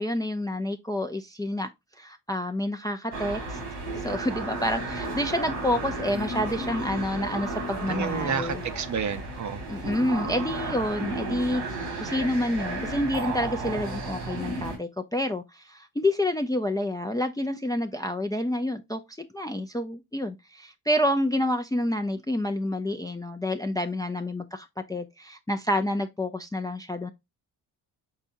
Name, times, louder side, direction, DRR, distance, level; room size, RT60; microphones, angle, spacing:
voice 1, 0.0-1.7 2.0-8.6 9.7-11.6 12.0-27.1, left 1 dB, 10° left, 0.5 m, -28 dB
sound 1, 3.1-14.8, right 2 dB, 85° right, 1.9 m, -33 dB
voice 2, 7.9-9.7, right 7 dB, 40° right, 0.7 m, -30 dB
5.6 x 3.5 x 2.6 m
supercardioid pair, 60°, 45 cm